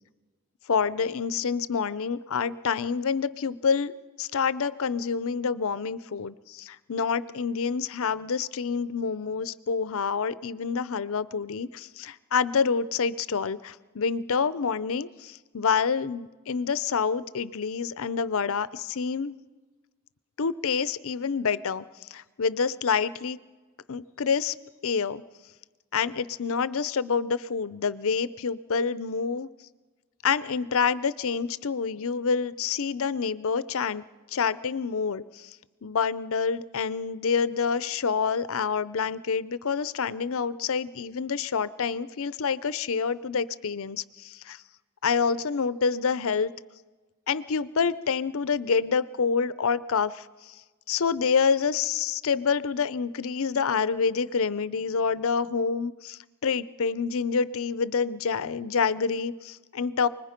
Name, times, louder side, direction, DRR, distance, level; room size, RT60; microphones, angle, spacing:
voice 1, 0.7-3.9 4.2-19.3 20.4-21.8 22.1-23.4 23.9-24.5 24.8-25.2 25.9-29.5 30.2-34.0 34.3-35.5 35.8-44.6 45.0-46.5 47.3-50.2 50.9-60.1, left 5 dB, 65° left, 17 dB, 0.6 m, -27 dB
28.5 x 20.5 x 5.2 m, 1.3 s
head